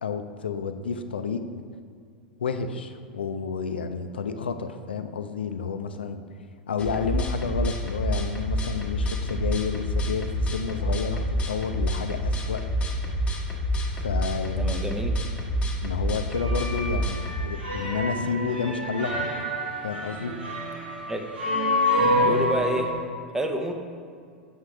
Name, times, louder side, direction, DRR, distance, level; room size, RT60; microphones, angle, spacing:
voice 1, 0.0-1.4 2.4-6.2 6.7-12.6 13.9-14.8 15.8-19.2 19.8-20.3, left 5 dB, 80° left, 8 dB, 0.5 m, -30 dB
sound 1, 6.8-17.4, equal, 20° left, 1.1 m, -28 dB
voice 2, 14.6-15.2 21.1-21.3 22.2-22.9 23.3-23.7, right 1 dB, 10° right, 4 dB, 0.7 m, -28 dB
sound 2, 16.3-22.9, left 1 dB, 75° right, 1.4 m, -27 dB
7.2 x 6.0 x 3.3 m, 2.2 s
hypercardioid pair, 90°, 5 cm